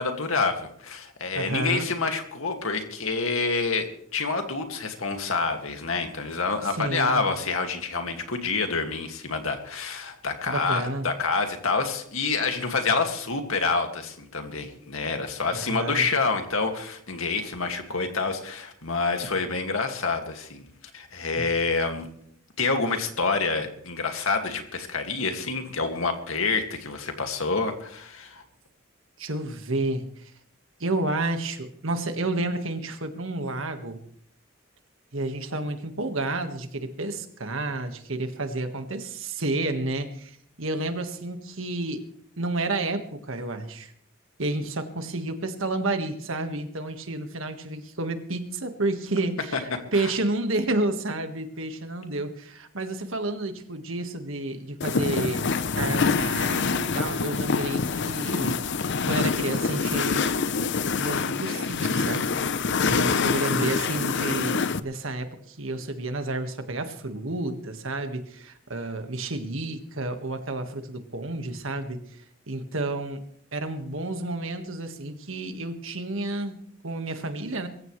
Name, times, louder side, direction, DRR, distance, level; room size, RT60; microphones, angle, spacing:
voice 1, 0.0-22.1 22.6-28.4 49.5-50.1, left 4 dB, 75° left, 5 dB, 2.2 m, -27 dB
voice 2, 1.3-1.9 6.6-7.2 10.5-11.1 15.5-16.0 21.4-21.5 29.2-30.3 30.8-34.0 35.1-42.0 42.4-43.9 44.4-55.5 55.7-58.7 59.1-60.3 60.9-62.2 62.8-72.0 72.5-73.2 73.5-77.7, right 2 dB, 70° right, 7 dB, 1.7 m, -30 dB
sound 1, 54.8-64.8, left 5 dB, 55° left, 0.7 m, -26 dB
23.0 x 15.0 x 3.3 m, 0.66 s
head